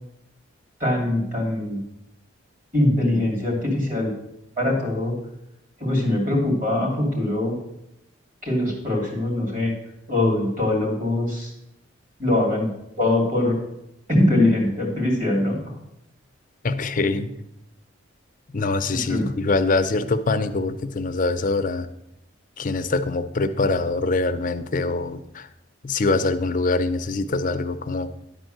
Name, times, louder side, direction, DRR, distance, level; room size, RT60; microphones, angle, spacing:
voice 1, 0.8-1.8 2.7-4.1 4.6-5.2 5.8-7.6 8.4-9.7 10.1-11.5 12.2-12.7 13.0-13.6 14.1-15.6 18.9-19.2, left 1 dB, 40° right, 0 dB, 2.9 m, -22 dB
voice 2, 16.6-17.3 18.5-21.9 22.6-25.5 25.8-28.1, left 3 dB, 40° left, 9 dB, 0.5 m, -24 dB
11.0 x 4.5 x 7.8 m, 0.82 s
head